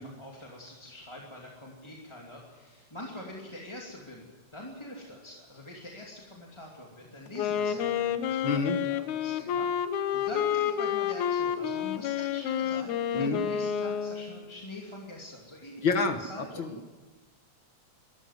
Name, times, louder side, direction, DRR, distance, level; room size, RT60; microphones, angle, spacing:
voice 1, 0.0-15.9 16.2-16.8, left 1 dB, 10° left, -2 dB, 2.3 m, -44 dB
Wind instrument woodwind instrument, 7.3-14.4, left 9 dB, 80° left, 2.3 m, -29 dB
voice 2, 8.4-8.8 13.1-13.4 15.8-16.9, left 4 dB, 50° left, 7 dB, 1.6 m, -28 dB
22.0 x 13.5 x 9.5 m, 1.3 s
omnidirectional pair, 3.4 m